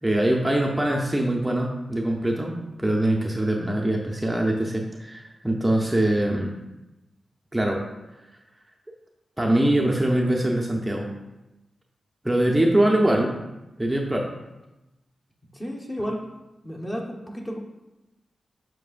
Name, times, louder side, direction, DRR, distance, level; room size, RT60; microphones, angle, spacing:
voice 1, 0.0-6.6 7.5-7.8 9.4-11.1 12.2-13.3 13.8-14.3, right 1 dB, 10° right, -1 dB, 0.7 m, -23 dB
voice 2, 15.5-16.2 16.6-17.6, equal, 20° left, -1 dB, 1.2 m, -32 dB
7.4 x 5.9 x 2.5 m, 1.0 s
cardioid pair, 80°, 0 cm